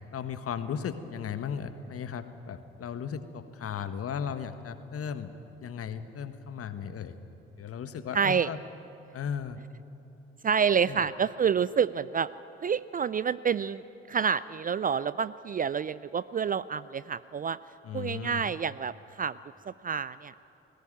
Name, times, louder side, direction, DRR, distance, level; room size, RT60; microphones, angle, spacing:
voice 1, 0.1-5.3 5.6-7.1 7.6-8.6 9.1-9.6 10.9-11.0 17.8-18.4, left 7 dB, 45° left, 10 dB, 1.5 m, -36 dB
voice 2, 8.1-8.5 10.4-12.3 12.6-13.8 14.1-17.6 17.9-19.4 19.7-20.3, right 7 dB, 25° right, 18 dB, 0.5 m, -28 dB
20.0 x 18.5 x 9.1 m, 2.9 s
figure-of-eight pair, 50°, 32 cm